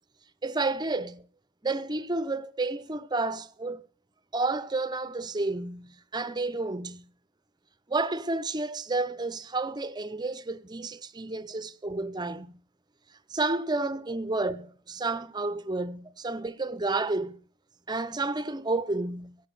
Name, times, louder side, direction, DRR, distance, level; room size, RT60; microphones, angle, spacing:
voice 1, 0.4-1.3 1.6-3.9 4.3-7.1 7.9-12.6 13.3-17.4 17.9-19.4, right 3 dB, 20° right, 0.6 m, -31 dB
15.0 x 9.3 x 6.5 m
head